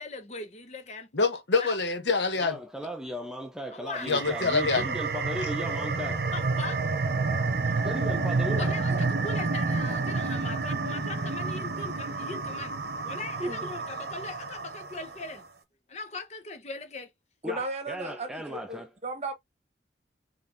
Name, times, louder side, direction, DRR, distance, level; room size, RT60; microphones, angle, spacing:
voice 1, 0.0-1.1 1.6-1.8 3.7-4.1 6.3-6.8 7.6-7.8 8.5-12.8 13.0-15.4 15.9-17.1, left 3 dB, 40° left, 0.8 m, -39 dB
voice 2, 1.1-2.6 4.1-4.8, left 4 dB, 80° left, 1.0 m, -25 dB
voice 3, 2.4-6.3 7.8-8.8 17.4-18.9, equal, 5° right, 0.5 m, -37 dB
sound 1, 3.9-15.1, right 3 dB, 65° right, 0.8 m, -29 dB
voice 4, 17.4-19.3, right 1 dB, 35° right, 1.1 m, -35 dB
3.8 x 3.2 x 2.5 m
head